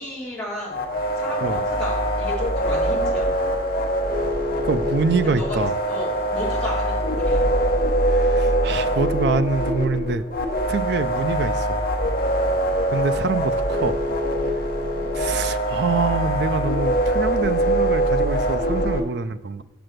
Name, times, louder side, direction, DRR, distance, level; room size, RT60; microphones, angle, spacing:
voice 1, 0.0-3.3 5.2-5.6 5.9-7.5 14.8-15.1, equal, 5° left, -6 dB, 2.5 m, -33 dB
sound 1, 0.7-19.0, equal, 45° left, 1.1 m, -23 dB
voice 2, 4.6-5.7 8.0-10.2 10.7-11.8 12.9-14.0 15.1-19.6, right 4 dB, 55° right, 12 dB, 0.4 m, -25 dB
6.6 x 6.1 x 6.5 m, 1.1 s
head